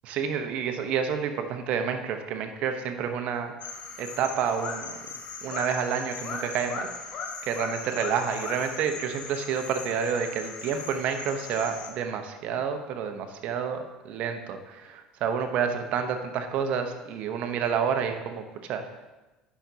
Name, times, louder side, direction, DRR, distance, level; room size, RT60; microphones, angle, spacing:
voice 1, 0.1-3.5 4.0-5.0 5.4-6.9 7.4-18.4 18.7-18.8, right 7 dB, 60° right, 6 dB, 0.8 m, -29 dB
sound 1, 3.6-11.9, left 5 dB, 50° left, 0.9 m, -38 dB
10.0 x 5.8 x 2.8 m, 1.1 s
supercardioid pair, 90°, 2 cm